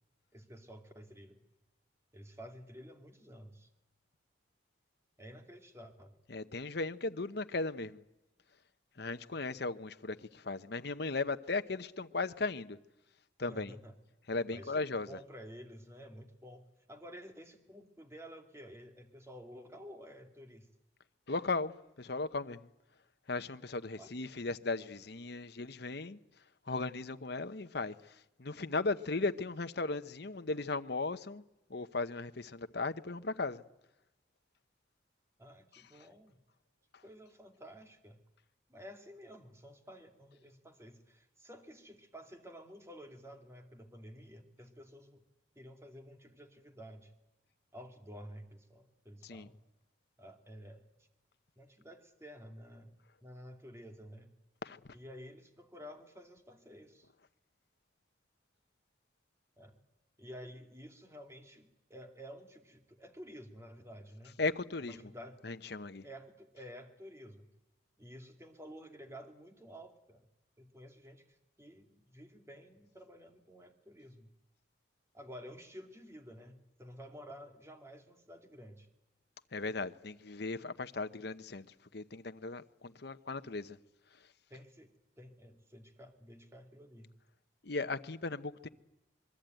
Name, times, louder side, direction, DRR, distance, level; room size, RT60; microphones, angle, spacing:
voice 1, 0.3-1.4 2.1-3.7 5.2-6.2 13.5-14.0 14.5-20.7 24.0-24.1 35.4-36.4 37.0-38.2 38.7-45.2 45.6-47.1 47.7-49.6 50.2-50.8 51.6-53.0 53.2-54.3 54.9-57.1 59.6-59.8 60.2-64.4 64.8-65.4 66.0-67.5 68.0-70.2 70.6-74.3 75.1-78.9 84.5-84.9 85.2-87.1, equal, 15° right, 2.4 m, -51 dB
voice 2, 6.3-8.0 9.0-12.8 13.4-13.7 14.3-15.1 21.3-22.7 23.3-26.2 26.7-27.9 28.4-31.4 31.7-33.6 35.7-35.8 49.2-49.5 54.6-54.8 64.4-65.0 65.4-66.0 79.5-81.7 81.9-83.8 87.6-88.7, left 3 dB, 55° left, 0.9 m, -37 dB
26.5 x 22.0 x 9.2 m
head